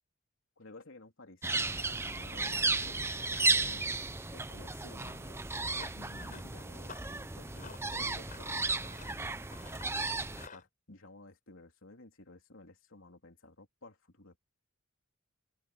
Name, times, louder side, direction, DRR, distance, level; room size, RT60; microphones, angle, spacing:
voice 1, 0.6-3.9 4.3-5.4 5.9-9.3 10.5-14.4, left 2 dB, 65° left, 3.8 m, -54 dB
sound 1, 1.4-10.5, right 3 dB, 10° right, 0.7 m, -34 dB
Run, 5.5-10.7, left 5 dB, 40° left, 5.4 m, -54 dB
open air
head